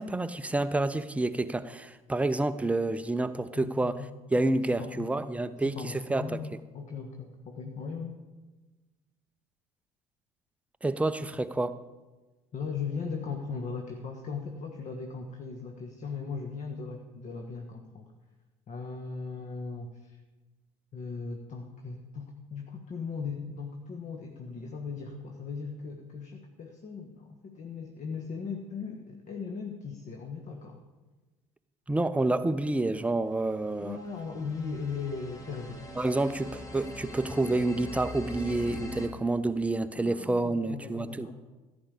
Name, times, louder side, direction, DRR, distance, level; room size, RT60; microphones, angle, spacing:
voice 1, 0.0-4.0 4.3-6.4 10.8-11.8 31.9-34.0 36.0-41.3, right 2 dB, 5° right, 11 dB, 0.6 m, -29 dB
voice 2, 3.5-4.1 4.5-5.1 5.6-6.5 6.7-8.1 12.5-18.1 18.7-20.2 20.9-30.8 33.8-36.1 39.9-41.3, left 5 dB, 40° left, 4 dB, 1.4 m, -38 dB
sound 1, 33.7-39.1, left 1 dB, 15° left, 2.1 m, -42 dB
14.5 x 5.5 x 8.2 m, 1.2 s
figure-of-eight pair, 60°, 20 cm